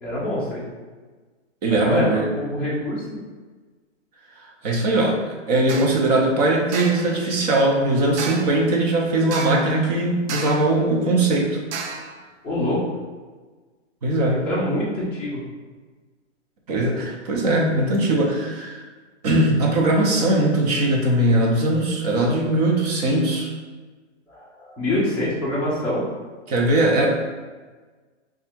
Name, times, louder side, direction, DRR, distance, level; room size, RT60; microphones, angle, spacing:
voice 1, 0.0-0.6 1.8-2.1 2.4-3.1 12.4-12.8 14.4-15.4 24.3-26.0, left 1 dB, 5° left, -10 dB, 0.5 m, -25 dB
voice 2, 1.6-2.2 4.6-5.2 5.5-11.6 14.0-14.4 16.7-18.8 19.2-23.5 26.5-27.1, right 2 dB, 35° right, -1 dB, 0.7 m, -20 dB
sound 1, 5.7-6.0 6.7-7.1 8.2-8.6 9.3-9.7 10.3-10.7 11.7-12.1, right 5 dB, 70° right, 0.6 m, -32 dB
3.2 x 2.4 x 4.4 m, 1.4 s
hypercardioid pair, 150°, 36 cm